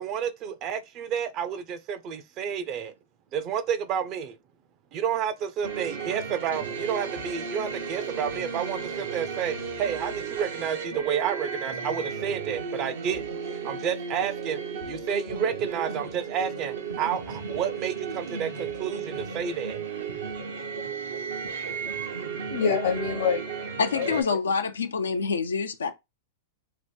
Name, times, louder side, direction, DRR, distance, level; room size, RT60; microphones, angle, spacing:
voice 1, 0.0-2.9 3.3-4.4 4.9-13.2 13.6-14.6 14.9-19.8, right 8 dB, 40° right, 0.5 m, -30 dB
sound 1, 5.6-24.2, right 5 dB, 75° right, 0.7 m, -34 dB
voice 2, 22.5-24.4, left 6 dB, 65° left, 0.8 m, -28 dB
voice 3, 23.8-25.9, left 5 dB, 85° left, 0.3 m, -26 dB
2.8 x 2.1 x 3.3 m
hypercardioid pair, 110°, 0 cm